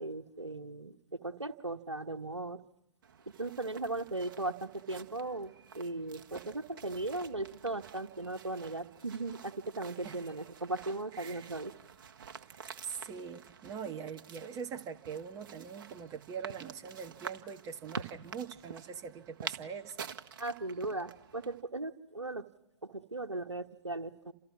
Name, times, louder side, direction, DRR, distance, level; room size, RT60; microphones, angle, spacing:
voice 1, 0.0-2.6 3.4-11.7 20.4-22.5 22.8-24.3, right 2 dB, 85° right, 3 dB, 1.4 m, -38 dB
sound 1, 3.0-21.6, right 7 dB, 50° right, 1.7 m, -49 dB
voice 2, 11.1-11.5 12.5-20.0, right 6 dB, 20° right, 6 dB, 1.5 m, -43 dB
30.0 x 27.5 x 6.2 m, 0.86 s
figure-of-eight pair, 125°, 15 cm